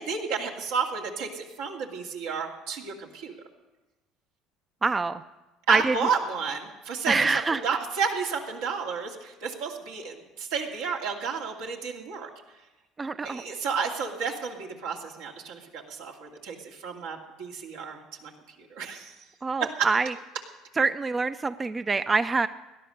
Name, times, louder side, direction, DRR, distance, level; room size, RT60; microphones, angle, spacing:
voice 1, 0.0-3.3 5.7-12.3 13.2-18.3 18.6-19.1 19.8-19.9, right 5 dB, 85° right, -1 dB, 2.4 m, -31 dB
voice 2, 4.8-5.2 5.7-6.0 7.1-7.7 13.0-13.4 19.4-20.1 20.8-22.5, right 4 dB, 25° right, 12 dB, 0.5 m, -25 dB
17.5 x 11.5 x 6.6 m, 1.1 s
supercardioid pair, 85°, 0 cm